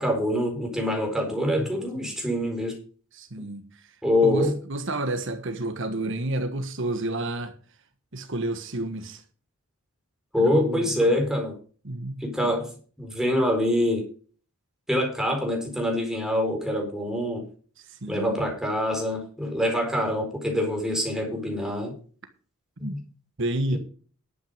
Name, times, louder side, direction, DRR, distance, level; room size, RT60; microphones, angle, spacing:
voice 1, 0.0-2.7 4.0-4.6 10.3-11.5 12.2-12.7 13.0-14.0 14.9-17.4 18.1-22.0 22.9-23.0 23.7-23.8, left 1 dB, ahead, 4.3 m, -25 dB
voice 2, 3.1-3.9 4.2-7.5 8.1-9.2 10.4-11.2 11.8-12.6 17.8-18.4 22.8-23.0 23.4-23.8, right 1 dB, 60° right, 1.4 m, -30 dB
11.5 x 9.0 x 5.1 m
head